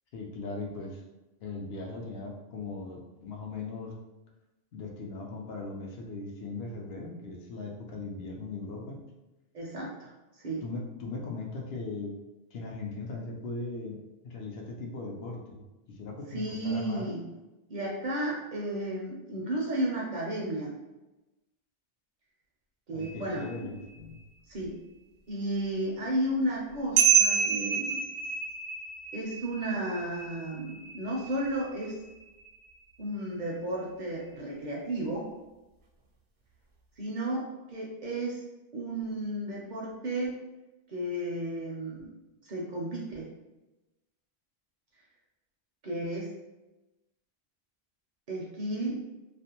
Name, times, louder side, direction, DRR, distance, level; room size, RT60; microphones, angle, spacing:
voice 1, 0.1-1.0 1.4-4.0 4.7-9.0 10.6-12.1 12.5-15.6 15.9-17.1 22.9-24.2, left 3 dB, 75° left, 0 dB, 0.8 m, -39 dB
voice 2, 9.5-10.1 10.4-10.6 16.3-17.2 17.7-20.8 22.9-23.8 24.5-24.8 25.3-28.0 29.1-32.0 33.0-35.3 37.0-38.4 38.7-40.4 40.9-42.1 42.4-43.3 45.8-46.3 48.3-49.0, right 1 dB, 55° right, -3 dB, 0.6 m, -33 dB
sound 1, 23.0-23.6 27.0-32.7, right 7 dB, 75° right, 0.9 m, -29 dB
2.4 x 2.1 x 2.8 m, 1.0 s
omnidirectional pair, 1.1 m